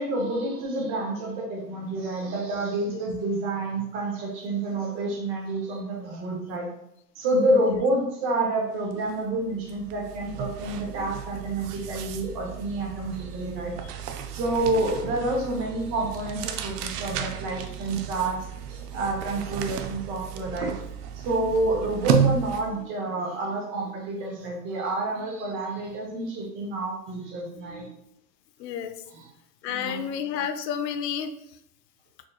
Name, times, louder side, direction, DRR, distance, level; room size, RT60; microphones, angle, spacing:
voice 1, 0.0-6.7 7.2-13.7 14.3-20.7 21.1-27.9 29.1-29.3 29.7-30.1, right 2 dB, 25° right, 0 dB, 0.6 m, -28 dB
sound 1, 8.9-9.1 9.4-22.8, right 8 dB, 70° right, 0.6 m, -32 dB
voice 2, 28.6-28.9 29.6-31.3, left 8 dB, 85° left, 9 dB, 0.6 m, -30 dB
4.3 x 3.0 x 2.2 m, 0.77 s
supercardioid pair, 140°, 48 cm